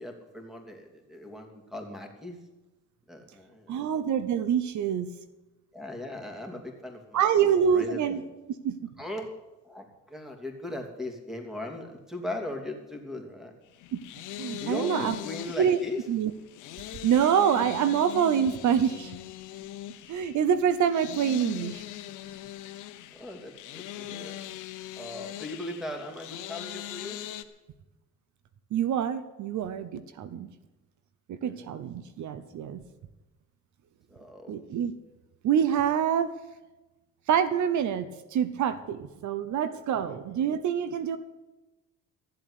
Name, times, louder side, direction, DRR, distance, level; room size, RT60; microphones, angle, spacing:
voice 1, 0.0-2.4 3.1-3.9 5.7-8.2 9.0-9.3 9.6-13.5 14.6-16.0 23.1-24.4 25.0-27.2 31.4-31.7 34.1-34.5, left 1 dB, ahead, 3 dB, 2.9 m, -39 dB
voice 2, 3.7-5.1 7.1-8.2 8.6-8.9 13.9-14.0 14.4-15.1 15.6-15.8 16.1-16.3 16.8-19.2 20.1-21.8 28.7-30.5 31.3-32.8 34.5-34.9 35.4-36.3 37.3-41.2, right 8 dB, 70° right, 13 dB, 0.9 m, -26 dB
sound 1, 13.7-27.4, left 13 dB, 90° left, 1.0 m, -41 dB
14.0 x 7.8 x 9.9 m, 1.1 s
cardioid pair, 90°, 30 cm